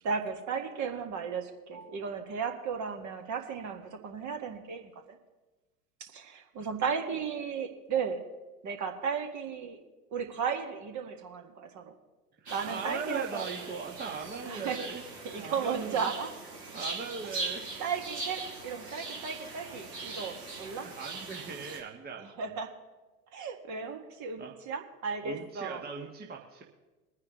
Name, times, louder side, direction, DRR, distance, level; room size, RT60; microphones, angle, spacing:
voice 1, 0.0-5.2 6.0-8.2 8.6-9.8 10.1-11.9 12.5-13.5 14.5-14.8 15.2-16.3 17.2-17.4 17.8-20.9 22.2-22.7 23.3-25.8, right 6 dB, 40° right, 5 dB, 1.7 m, -35 dB
voice 2, 12.4-15.0 15.3-16.1 16.7-17.7 20.1-20.2 20.7-22.3 24.4-24.5 25.2-26.6, right 5 dB, 20° right, 1 dB, 1.3 m, -39 dB
sound 1, 12.4-21.8, right 3 dB, 90° right, 2.5 m, -41 dB
22.5 x 9.6 x 3.1 m, 1.2 s
figure-of-eight pair, 85°, 47 cm